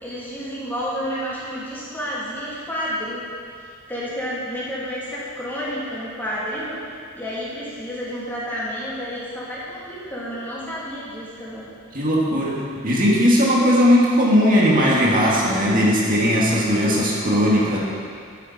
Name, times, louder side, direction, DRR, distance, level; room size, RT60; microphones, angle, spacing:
voice 1, 0.0-3.2 3.5-6.8 7.1-11.7, equal, 10° left, -9 dB, 3.0 m, -30 dB
voice 2, 11.9-17.8, equal, 45° right, -5 dB, 2.0 m, -18 dB
11.5 x 9.6 x 4.3 m, 2.2 s
head